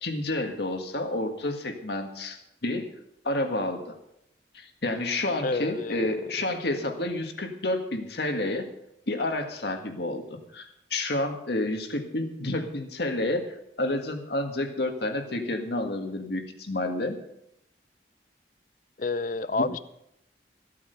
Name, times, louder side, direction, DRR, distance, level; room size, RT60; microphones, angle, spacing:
voice 1, 0.0-2.9 3.2-3.9 4.5-8.7 9.1-17.2 19.6-19.7, left 2 dB, 65° left, 4 dB, 1.8 m, -30 dB
voice 2, 5.4-6.3 19.0-19.8, left 3 dB, 45° left, 15 dB, 0.6 m, -29 dB
15.0 x 8.5 x 6.8 m, 0.81 s
head